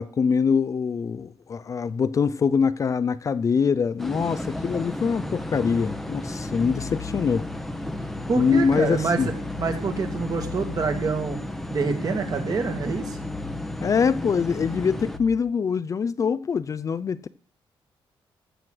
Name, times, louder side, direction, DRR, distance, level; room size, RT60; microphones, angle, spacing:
voice 1, 0.0-7.5 8.4-9.3 13.8-17.3, left 6 dB, 35° left, 0.5 m, -24 dB
sound 1, 4.0-15.2, equal, ahead, 0.9 m, -33 dB
sound 2, 4.4-15.4, left 15 dB, 70° left, 1.4 m, -42 dB
voice 2, 8.3-9.3 9.6-11.4 11.7-13.2, right 4 dB, 40° right, 2.4 m, -26 dB
15.0 x 6.4 x 7.7 m
cardioid pair, 155°, 9 cm